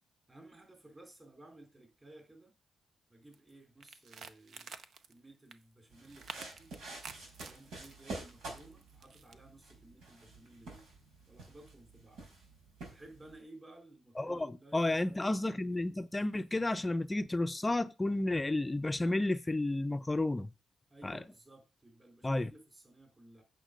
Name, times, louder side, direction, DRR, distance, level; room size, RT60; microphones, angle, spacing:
voice 1, 0.3-2.5 3.1-4.8 5.1-6.7 7.4-10.9 11.3-12.2 12.9-15.9 20.9-23.4, right 2 dB, 25° right, 3.8 m, -57 dB
sound 1, 3.3-3.5 3.8-5.1 5.5-5.6 6.0-7.9 8.6-9.3, right 5 dB, 60° right, 0.8 m, -49 dB
sound 2, 5.9-13.4, right 2 dB, 90° right, 4.6 m, -49 dB
voice 2, 14.2-20.5 21.0-21.2 22.2-22.5, left 2 dB, 15° left, 0.5 m, -32 dB
8.9 x 5.9 x 5.1 m
cardioid pair, 100°, 0 cm